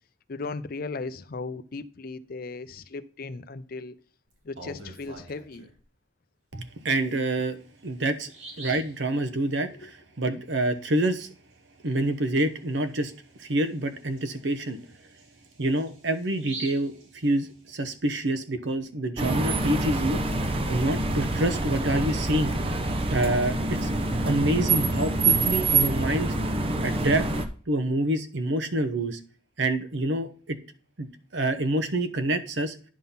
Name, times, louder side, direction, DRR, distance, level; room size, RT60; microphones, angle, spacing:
voice 1, 0.3-3.9 4.4-5.7 9.7-9.9, left 3 dB, 45° left, 0.5 m, -37 dB
Bird vocalization bird call bird song, 4.3-5.8 7.3-7.4 7.8-7.9 8.3-9.0 12.4-12.6 13.0-13.1 13.6-17.8, right 3 dB, 80° right, 2.7 m, -45 dB
voice 2, 6.5-7.6 7.8-8.3 8.6-11.3 11.8-13.1 13.4-14.8 15.6-20.2 20.7-22.5 23.1-23.9 24.2-26.3 26.8-27.2 27.7-29.2 29.6-30.6 31.0-31.1 31.3-32.8, right 1 dB, 60° right, 0.9 m, -27 dB
sound 1, 19.2-27.5, right 2 dB, 25° right, 0.7 m, -26 dB
10.5 x 3.7 x 5.6 m
head